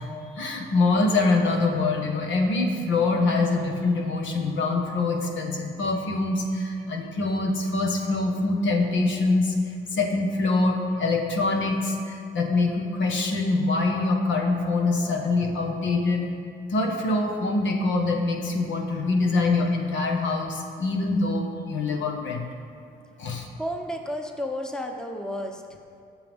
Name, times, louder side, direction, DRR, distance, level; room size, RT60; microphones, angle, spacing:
voice 1, 0.0-16.3 16.7-22.4 23.2-23.5, left 3 dB, 70° left, 2 dB, 1.6 m, -24 dB
voice 2, 23.6-25.8, equal, 5° left, 3 dB, 1.0 m, -32 dB
17.5 x 7.0 x 3.7 m, 2.3 s
cardioid pair, 90°, 20 cm